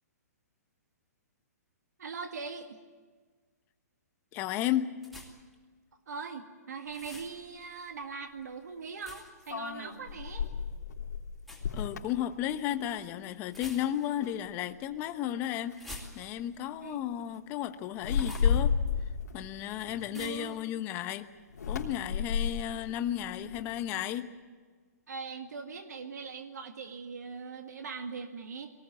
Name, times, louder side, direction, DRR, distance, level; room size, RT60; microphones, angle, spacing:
voice 1, 2.0-2.8 6.1-10.5 16.8-17.0 20.1-20.6 25.1-28.7, right 5 dB, 75° right, 6 dB, 2.0 m, -41 dB
voice 2, 4.3-5.0 11.7-15.8 16.1-18.8 19.3-21.3 21.7-24.3, left 11 dB, 20° left, 9 dB, 1.0 m, -33 dB
sound 1, 5.0-5.5 6.9-7.4 9.0-9.5 11.4-11.7 13.5-14.2 15.7-16.6 18.1-18.6 20.1-20.5, left 2 dB, ahead, 2.6 m, -47 dB
sound 2, 7.2-7.3 9.4-13.1 13.4-13.8 14.2-14.8 15.7-15.9 16.2-16.5 17.9-20.6 21.5-23.9, left 6 dB, 85° left, 3.4 m, -33 dB
22.5 x 19.0 x 8.9 m, 1.5 s
hypercardioid pair, 160°, 9 cm